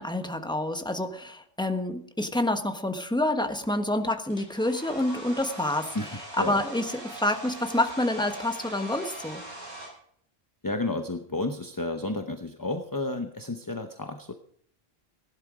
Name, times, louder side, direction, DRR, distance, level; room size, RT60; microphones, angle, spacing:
voice 1, 0.0-6.0 6.3-9.4, left 1 dB, 5° left, 6 dB, 1.2 m, -28 dB
Domestic sounds home sounds, 4.3-9.9, right 1 dB, 90° right, 7.6 m, -42 dB
voice 2, 5.9-6.5 10.6-14.3, left 2 dB, 20° left, 6 dB, 0.8 m, -32 dB
16.5 x 11.5 x 5.0 m, 0.65 s
omnidirectional pair, 1.1 m